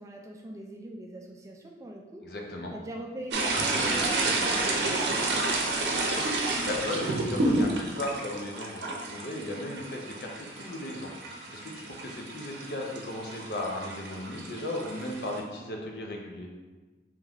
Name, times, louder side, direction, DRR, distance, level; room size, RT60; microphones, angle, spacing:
voice 1, 0.0-2.2 2.7-5.8, right 1 dB, 15° right, 1 dB, 0.3 m, -41 dB
voice 2, 2.2-2.7 6.5-16.5, left 1 dB, 60° left, 0 dB, 0.6 m, -36 dB
sound 1, 3.3-15.4, right 2 dB, 70° right, 0.6 m, -30 dB
3.5 x 3.1 x 3.5 m, 1.3 s
head